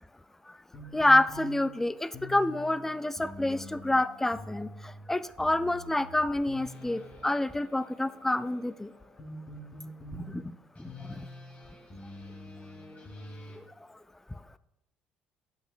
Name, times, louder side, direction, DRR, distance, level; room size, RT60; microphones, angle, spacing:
sound 1, 0.7-13.6, left 1 dB, 35° left, 2.6 m, -46 dB
voice 1, 0.9-4.7 5.1-8.9 10.1-10.5 10.8-11.2, left 1 dB, 10° left, 16 dB, 0.3 m, -28 dB
11.5 x 5.7 x 2.4 m, 0.90 s
hypercardioid pair, 55°, 4 cm